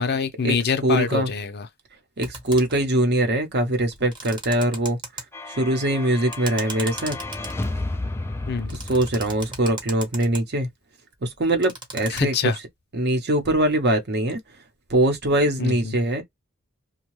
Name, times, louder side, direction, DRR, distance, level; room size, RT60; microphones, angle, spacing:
voice 1, 0.0-1.7 8.5-8.8 12.1-12.6 15.6-15.9, left 5 dB, 50° left, 0.6 m, -25 dB
voice 2, 0.8-1.3 2.2-7.2 8.9-10.7 11.2-12.3 12.9-14.4 14.9-16.2, right 1 dB, 50° right, 0.8 m, -22 dB
sound 1, 2.2-2.8 3.9-5.2 6.3-7.9 8.7-10.4 11.4-12.2, right 2 dB, 25° right, 1.0 m, -36 dB
sound 2, 5.3-10.0, left 2 dB, 10° left, 0.3 m, -33 dB
2.7 x 2.2 x 3.0 m
head